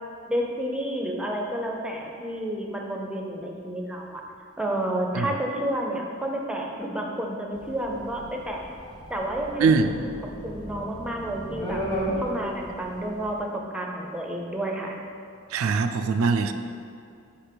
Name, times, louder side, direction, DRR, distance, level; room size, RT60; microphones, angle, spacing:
voice 1, 0.3-4.2 4.6-8.6 9.1-10.1 10.4-11.8 12.2-15.0, right 1 dB, 5° right, 0 dB, 0.5 m, -30 dB
sound 1, 7.5-13.4, equal, 20° left, 1.1 m, -34 dB
voice 2, 9.6-9.9 15.5-16.5, right 4 dB, 85° right, 8 dB, 0.4 m, -22 dB
4.9 x 4.4 x 5.1 m, 2.4 s
head